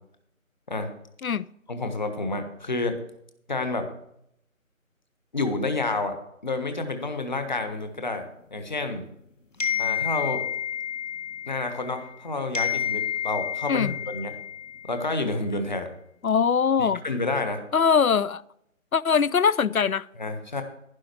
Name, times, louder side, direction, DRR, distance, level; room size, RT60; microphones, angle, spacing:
voice 1, 1.7-2.9 3.5-3.9 5.3-6.2 6.4-8.2 8.5-9.0 9.8-10.4 11.5-14.3 14.8-15.9 16.8-17.6 20.2-20.6, left 3 dB, 35° left, 7 dB, 1.4 m, -29 dB
sound 1, 9.6-12.2 12.5-15.1, left 9 dB, 65° left, 1.8 m, -30 dB
voice 2, 16.2-17.0 17.7-18.4 18.9-20.1, left 6 dB, 85° left, 20 dB, 0.6 m, -22 dB
11.5 x 10.5 x 4.5 m, 0.74 s
figure-of-eight pair, 160°, 41 cm